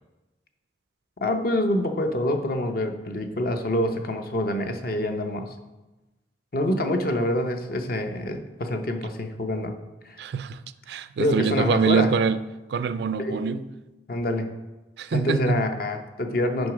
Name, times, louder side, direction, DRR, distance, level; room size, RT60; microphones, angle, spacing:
voice 1, 1.2-5.5 6.5-9.7 10.0-10.2 11.2-12.1 13.2-13.6 14.1-14.5 15.1-16.7, left 1 dB, 50° left, 0.6 m, -26 dB
voice 2, 10.2-10.6 10.9-12.4 12.7-13.6 15.0-15.6, right 6 dB, 60° right, 0.3 m, -24 dB
6.2 x 5.3 x 4.9 m
head